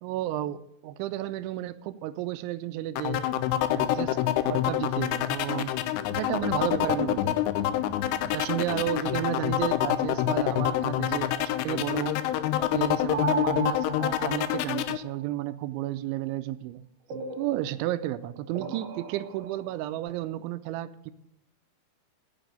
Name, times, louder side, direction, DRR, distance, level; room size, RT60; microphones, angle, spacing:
voice 1, 0.0-3.2 3.7-4.2 4.4-5.7 6.1-7.5 8.3-12.2 12.6-16.8 17.4-21.1, right 14 dB, 85° right, 13 dB, 2.8 m, -32 dB
sound 1, 3.0-15.0, left 13 dB, 80° left, 2.4 m, -27 dB
sound 2, 13.1-15.0 17.1-19.9, right 6 dB, 65° right, 2.9 m, -36 dB
9.2 x 8.0 x 8.9 m, 0.82 s
omnidirectional pair, 5.5 m